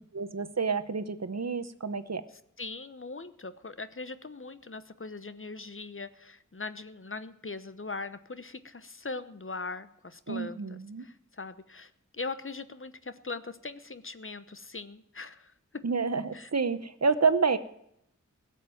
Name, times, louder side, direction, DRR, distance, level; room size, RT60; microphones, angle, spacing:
voice 1, 0.1-2.2 10.3-11.0 15.8-17.6, right 5 dB, 55° right, 12 dB, 0.9 m, -28 dB
voice 2, 2.6-15.8 16.3-16.5, left 3 dB, 40° left, 12 dB, 0.9 m, -41 dB
16.5 x 7.4 x 8.9 m, 0.75 s
wide cardioid pair, 40°, 31 cm